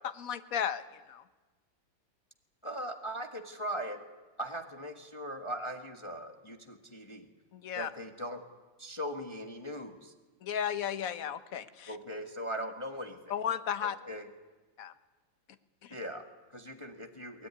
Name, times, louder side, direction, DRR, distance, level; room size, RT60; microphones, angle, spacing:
voice 1, 0.2-1.2 7.5-7.9 10.4-12.0 13.3-13.9 14.8-14.9 15.8-15.9, left 9 dB, 55° left, 12 dB, 1.3 m, -34 dB
voice 2, 2.6-4.0 4.4-7.3 7.8-8.4 8.8-10.1 11.9-13.4 13.8-14.3 15.9-17.5, equal, 15° left, 5 dB, 1.3 m, -40 dB
23.0 x 19.5 x 9.8 m, 1.3 s
omnidirectional pair, 2.0 m